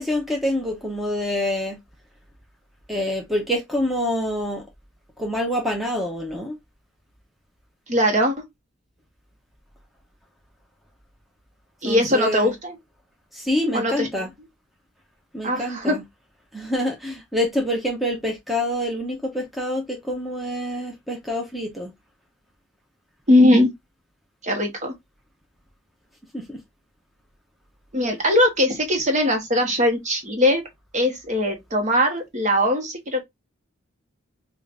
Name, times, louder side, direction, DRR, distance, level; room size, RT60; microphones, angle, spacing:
voice 1, 0.0-1.8 2.9-4.6 5.2-6.6 11.8-12.5 13.3-14.3 15.3-16.0 16.5-21.9 26.3-26.6, left 1 dB, ahead, 0.8 m, -26 dB
voice 2, 7.9-8.3 11.8-12.8 13.7-14.1 15.4-16.0 23.3-23.7 24.4-24.9 27.9-30.6 30.9-33.2, left 1 dB, 35° right, 1.2 m, -20 dB
5.0 x 2.4 x 2.5 m
head